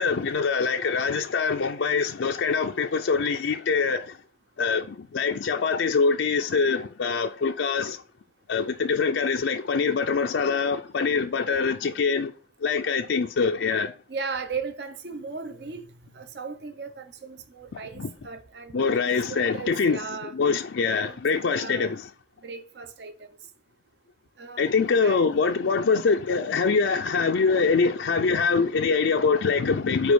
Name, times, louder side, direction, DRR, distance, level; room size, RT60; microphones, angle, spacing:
voice 1, 0.0-4.2 4.6-8.0 8.5-12.3 12.6-13.9 18.0-18.1 18.7-20.0 20.3-22.1 24.6-30.1, left 5 dB, 90° left, 0.4 m, -24 dB
voice 2, 14.1-15.9 16.1-18.8 19.3-20.3 20.9-21.9 22.4-23.4 24.4-25.3, right 5 dB, 70° right, 0.8 m, -37 dB
5.2 x 4.6 x 6.1 m
head